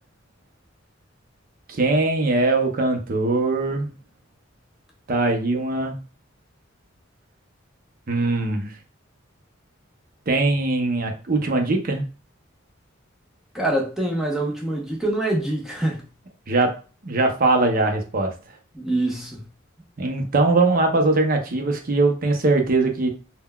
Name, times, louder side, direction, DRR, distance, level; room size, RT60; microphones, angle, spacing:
voice 1, 1.7-3.9 5.1-5.9 8.1-8.7 10.3-12.0 16.5-16.7 17.0-18.3 20.0-23.1, right 2 dB, 45° right, 0.6 m, -21 dB
voice 2, 13.5-16.0 18.7-19.4, right 1 dB, ahead, 0.7 m, -25 dB
3.7 x 2.2 x 2.2 m
head